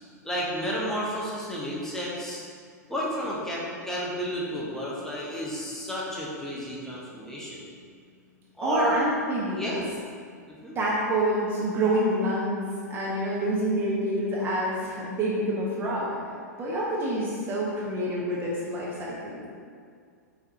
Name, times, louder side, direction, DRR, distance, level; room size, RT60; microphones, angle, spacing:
voice 1, 0.2-2.4 2.9-7.7 8.6-9.0 9.5-9.8 10.6-10.8, equal, 5° left, -6 dB, 0.8 m, -31 dB
voice 2, 8.6-9.8 10.7-12.6 12.9-16.1 16.6-19.4, right 1 dB, 20° right, -5 dB, 0.7 m, -27 dB
4.6 x 4.1 x 2.6 m, 2.1 s
figure-of-eight pair, 100°, 9 cm